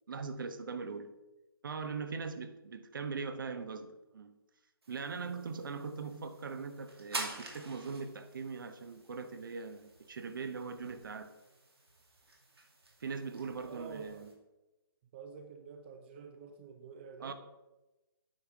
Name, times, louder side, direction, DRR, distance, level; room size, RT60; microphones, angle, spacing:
voice 1, 0.1-1.1 1.6-4.4 4.9-11.3 13.0-14.3 17.2-17.3, right 5 dB, 55° right, 0.8 m, -41 dB
sound 1, 4.8-14.3, right 2 dB, 80° right, 2.1 m, -48 dB
voice 2, 13.7-14.3 15.1-17.3, right 5 dB, 25° right, 0.5 m, -48 dB
8.9 x 5.8 x 3.6 m
figure-of-eight pair, 145°, 13 cm